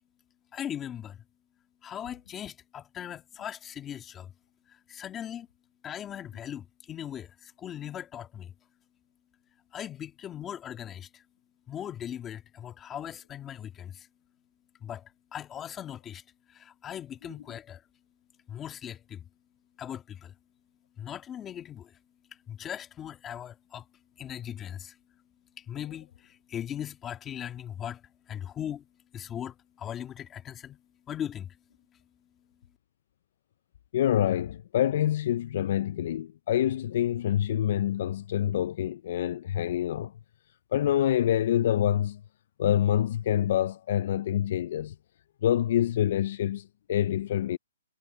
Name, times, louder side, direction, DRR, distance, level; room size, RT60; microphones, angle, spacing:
voice 1, 0.5-1.2 1.8-4.3 4.7-5.5 5.8-8.5 9.7-11.2 11.7-14.1 14.8-16.2 16.5-17.8 18.5-19.3 19.8-20.3 21.0-22.0 22.5-23.9 24.2-25.0 25.6-28.9 29.1-30.8 31.1-31.6, left 10 dB, 15° left, 1.7 m, -39 dB
voice 2, 33.9-40.1 40.7-42.2 42.6-44.9 45.4-47.6, left 11 dB, 50° left, 0.4 m, -26 dB
hypercardioid pair, 155°, 0 cm